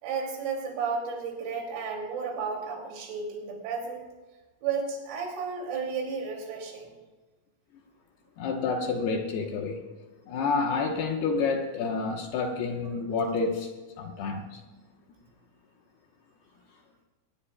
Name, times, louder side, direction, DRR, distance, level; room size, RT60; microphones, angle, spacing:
voice 1, 0.0-4.1 4.6-6.9, right 5 dB, 90° right, 0 dB, 5.6 m, -33 dB
voice 2, 8.4-9.8 10.3-13.7 14.0-14.6, left 4 dB, 70° left, 2 dB, 2.6 m, -29 dB
23.0 x 19.0 x 2.3 m, 1.2 s
omnidirectional pair, 5.9 m